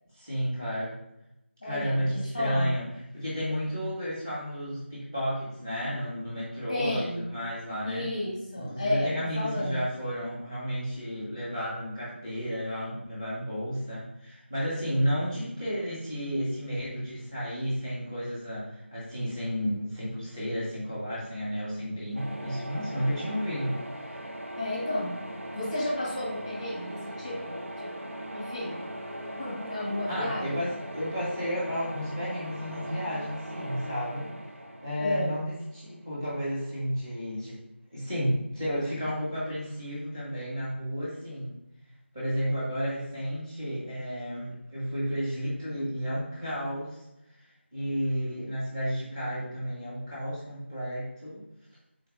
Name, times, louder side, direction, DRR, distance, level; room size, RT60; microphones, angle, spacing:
voice 1, 0.1-0.9 1.6-2.8 3.1-8.1 8.6-23.7 24.0-24.2 30.1-34.3 34.8-37.6 37.9-41.5 42.1-47.0 47.7-51.4, equal, 15° right, -8 dB, 1.2 m, -32 dB
voice 2, 1.6-2.7 6.7-7.3 7.8-9.8 24.6-25.1 25.5-28.0 28.3-28.8 29.4-30.6 35.0-35.3, left 1 dB, 15° left, -5 dB, 0.9 m, -32 dB
sound 1, 22.2-36.0, right 1 dB, 90° right, 0.6 m, -40 dB
3.9 x 3.3 x 2.4 m, 0.86 s
figure-of-eight pair, 175°, 7 cm